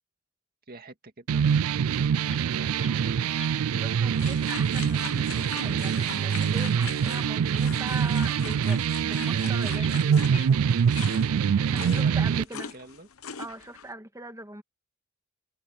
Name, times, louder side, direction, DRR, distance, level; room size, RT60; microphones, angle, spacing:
voice 1, 0.7-1.7 2.5-3.3 11.6-13.1, right 2 dB, 45° right, 2.2 m, -45 dB
sound 1, 1.3-12.4, right 7 dB, 75° right, 0.4 m, -25 dB
sound 2, 2.3-2.4 2.7-2.9 3.3-3.5 7.5-7.6 8.1-8.2 8.7-8.8 9.2-9.4 9.7-9.9 10.2-10.6 10.9-11.1, left 6 dB, 30° left, 0.9 m, -43 dB
voice 2, 3.7-10.6 11.7-12.7 13.4-14.6, right 1 dB, 15° right, 1.8 m, -41 dB
sound 3, 4.1-13.9, left 7 dB, 70° left, 1.0 m, -41 dB
head